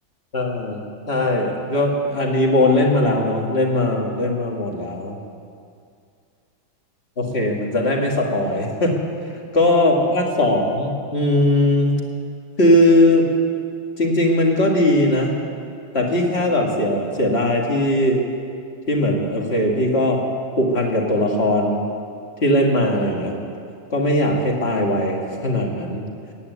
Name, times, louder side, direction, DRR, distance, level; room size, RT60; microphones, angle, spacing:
voice 1, 0.3-5.2 7.2-9.0 9.5-12.0 12.6-13.3 14.0-15.3 15.9-18.2 18.9-20.2 20.6-21.8 22.4-23.4 23.9-26.1, left 1 dB, 30° left, -1 dB, 2.3 m, -19 dB
16.0 x 9.7 x 9.4 m, 2.3 s
omnidirectional pair, 2.1 m